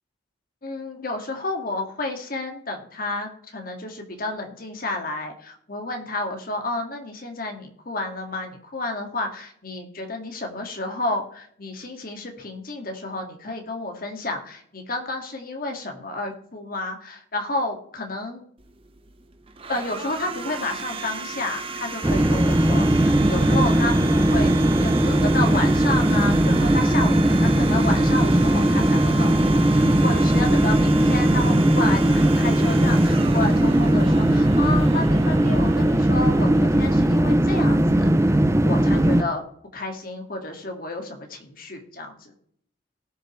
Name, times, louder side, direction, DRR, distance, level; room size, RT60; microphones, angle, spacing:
voice 1, 0.6-18.4 19.7-24.5 24.8-39.4 39.7-42.3, left 2 dB, 50° left, 3 dB, 2.0 m, -31 dB
Domestic sounds home sounds, 18.6-37.4, right 4 dB, 30° right, 0.9 m, -35 dB
sound 1, 22.0-39.2, right 1 dB, 15° right, 0.5 m, -19 dB
18.5 x 6.5 x 3.2 m, 0.65 s
head